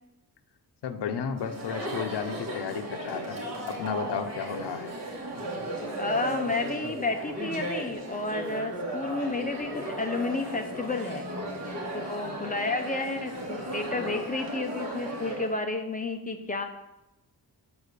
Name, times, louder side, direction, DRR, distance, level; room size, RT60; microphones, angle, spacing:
voice 1, 0.8-3.4 3.7-4.9, left 7 dB, 75° left, 7 dB, 0.7 m, -33 dB
Chatter, 1.4-15.5, right 1 dB, 40° right, 2.1 m, -36 dB
voice 2, 6.0-11.2 11.9-16.6, left 3 dB, 20° left, 5 dB, 0.7 m, -31 dB
6.9 x 4.6 x 6.7 m, 0.94 s
wide cardioid pair, 145°, 40 cm